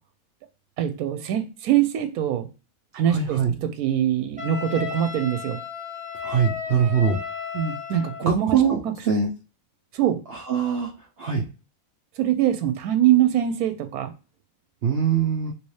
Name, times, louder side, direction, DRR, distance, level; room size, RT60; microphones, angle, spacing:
voice 1, 0.8-2.5 2.9-5.6 7.5-8.9 10.0-10.2 12.2-14.1, right 11 dB, 90° right, 8 dB, 1.1 m, -23 dB
voice 2, 3.1-3.5 6.2-7.2 8.3-9.3 10.3-10.9 11.2-11.4 14.8-15.5, right 6 dB, 55° right, -2 dB, 0.7 m, -22 dB
Wind instrument woodwind instrument, 4.4-8.3, left 6 dB, 10° right, 0.5 m, -34 dB
3.3 x 2.8 x 3.1 m, 0.31 s
omnidirectional pair, 1.5 m